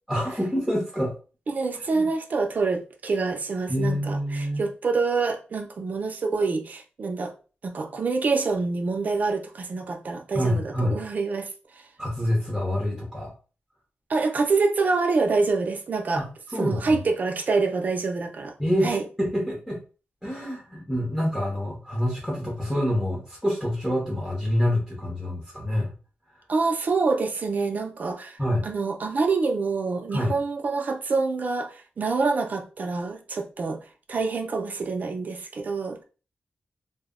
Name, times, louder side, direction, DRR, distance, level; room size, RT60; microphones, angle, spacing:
voice 1, 0.1-1.1 1.7-2.1 3.7-4.6 10.3-11.0 12.0-13.3 16.2-17.0 18.6-19.8 20.2-25.9 28.4-28.7 30.1-30.3, equal, 5° left, 0.7 m, -27 dB
voice 2, 1.5-7.3 7.6-11.5 14.1-16.2 16.6-18.5 18.8-19.0 26.5-33.8 34.1-36.0, right 4 dB, 45° right, 0.4 m, -26 dB
2.1 x 2.0 x 3.5 m
wide cardioid pair, 160°, 4 cm